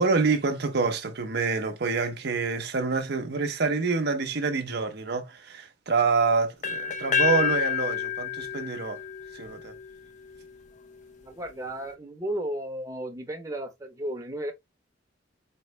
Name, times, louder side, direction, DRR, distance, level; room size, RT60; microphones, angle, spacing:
voice 1, 0.0-9.0 9.3-9.7, right 4 dB, 60° right, 0.8 m, -27 dB
sound 1, 6.6-10.5, left 7 dB, 40° left, 0.6 m, -29 dB
voice 2, 11.2-14.5, right 1 dB, 20° right, 0.9 m, -34 dB
4.4 x 3.1 x 3.0 m
head